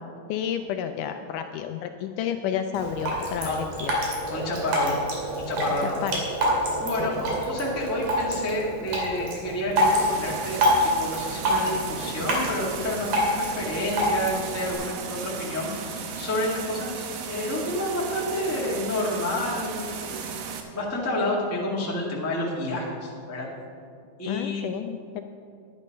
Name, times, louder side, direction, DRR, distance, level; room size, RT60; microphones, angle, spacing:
voice 1, 0.3-3.9 6.0-6.1 7.0-7.2 24.2-25.2, left 9 dB, 80° left, 6 dB, 1.9 m, -31 dB
Drip, 2.7-14.7, equal, 65° right, 3.4 m, -27 dB
voice 2, 4.3-5.0 5.4-6.0 6.8-13.1 13.4-20.2 20.7-23.5 24.2-24.6, left 1 dB, 10° left, -4 dB, 0.6 m, -29 dB
sound 1, 9.8-20.6, right 6 dB, 85° right, 2.7 m, -36 dB
11.0 x 9.9 x 5.3 m, 2.4 s
omnidirectional pair, 4.0 m